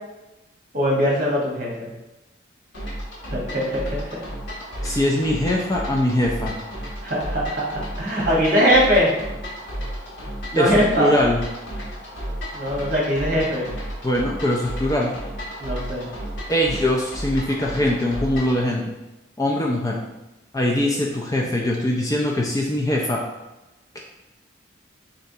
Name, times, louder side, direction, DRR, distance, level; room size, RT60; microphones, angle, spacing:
voice 1, 0.7-1.9 3.3-4.2 7.0-9.1 10.5-11.1 12.5-13.7 15.6-16.1, equal, 45° right, -4 dB, 1.2 m, -21 dB
sound 1, 2.7-18.6, equal, 70° left, 1.2 m, -33 dB
voice 2, 4.8-6.5 10.5-11.4 14.0-15.2 16.5-18.8 19.4-20.0 20.5-23.2, left 1 dB, 20° left, -2 dB, 0.4 m, -22 dB
4.0 x 3.3 x 2.7 m, 1.0 s
head